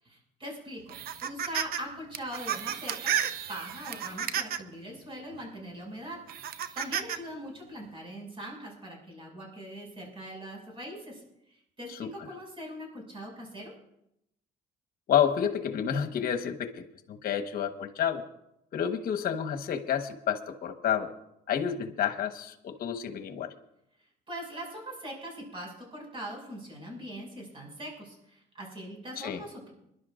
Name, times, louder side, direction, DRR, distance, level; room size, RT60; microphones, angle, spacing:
voice 1, 0.0-6.3 6.7-13.7 24.3-29.7, equal, 30° right, 0 dB, 6.1 m, -42 dB
sound 1, 0.9-1.8 2.1-4.7 5.3-5.5 6.3-7.2, right 9 dB, 65° right, 0.6 m, -32 dB
voice 2, 15.1-18.2 18.7-21.1 21.5-23.5 29.2-29.4, left 9 dB, 60° left, 7 dB, 1.2 m, -29 dB
27.5 x 11.5 x 2.5 m, 0.79 s
cardioid pair, 110°, 17 cm